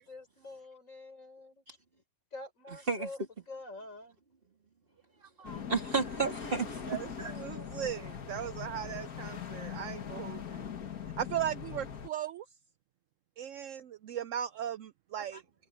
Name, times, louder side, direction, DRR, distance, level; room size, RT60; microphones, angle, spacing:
voice 1, 0.1-1.6 2.3-3.2 3.5-4.1, left 2 dB, 60° left, 5.2 m, -46 dB
sound 1, 5.4-12.1, left 7 dB, 85° left, 2.0 m, -41 dB
voice 2, 5.4-7.7, right 5 dB, 40° right, 3.0 m, -33 dB
voice 3, 6.9-10.7 11.2-12.4 13.4-15.4, right 10 dB, 70° right, 0.8 m, -37 dB
omnidirectional pair, 1.5 m